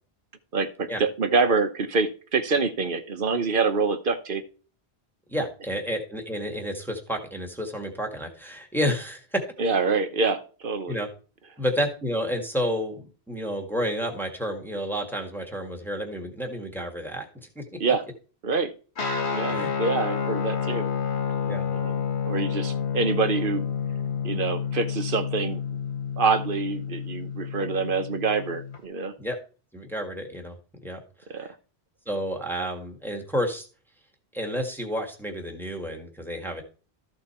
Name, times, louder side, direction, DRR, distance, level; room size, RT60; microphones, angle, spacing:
voice 1, 0.5-4.4 9.6-11.0 17.8-18.0 18.4-18.7 19.3-20.9 21.7-23.7 24.2-25.6 26.2-29.1 31.3-31.5, right 4 dB, 55° right, 10 dB, 1.1 m, -26 dB
voice 2, 5.3-9.4 10.9-11.1 11.6-17.6 19.5-19.7 21.5-21.6 29.2-29.4 29.7-30.6 30.8-31.0 31.3-31.5 32.0-33.7 34.3-36.6, equal, ahead, 1 dB, 1.7 m, -30 dB
Guitar, 19.0-28.8, left 6 dB, 75° left, 1.5 m, -29 dB
13.5 x 5.2 x 4.3 m, 0.37 s
omnidirectional pair, 1.1 m